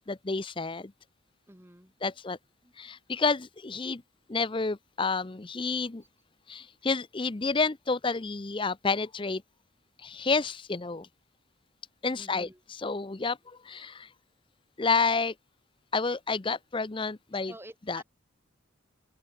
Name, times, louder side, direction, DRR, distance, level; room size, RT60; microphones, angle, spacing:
voice 1, 0.1-0.9 2.0-2.4 2.8-4.0 4.3-6.0 6.5-9.4 10.0-11.1 12.0-14.1 14.8-15.3 15.9-17.5 17.9-18.0, left 4 dB, 25° left, 0.6 m, -30 dB
voice 2, 1.5-2.2 2.6-2.7 12.1-12.6 17.5-18.0, right 1 dB, 10° right, 1.6 m, -50 dB
open air
head